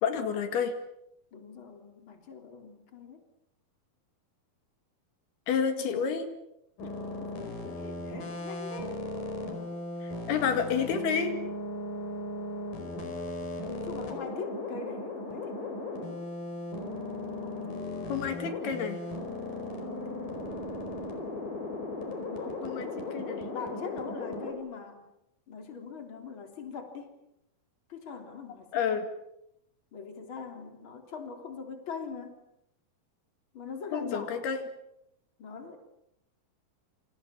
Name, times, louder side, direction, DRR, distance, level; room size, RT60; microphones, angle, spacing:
voice 1, 0.0-0.7 5.5-6.3 10.3-11.3 18.1-19.0 22.6-23.4 28.7-29.1 33.9-34.6, left 7 dB, 85° left, 8 dB, 4.2 m, -29 dB
voice 2, 1.3-3.3 5.8-6.3 6.8-9.0 13.7-15.8 17.4-18.5 19.1-20.2 22.3-22.6 23.1-23.2 23.5-25.0 25.5-27.2 27.9-29.0 29.9-32.4 33.5-34.5 35.4-35.8, left 5 dB, 35° left, 5 dB, 3.9 m, -43 dB
sound 1, 6.8-24.5, left 2 dB, 60° left, 6.5 m, -37 dB
28.5 x 26.5 x 7.4 m, 0.81 s
omnidirectional pair, 4.4 m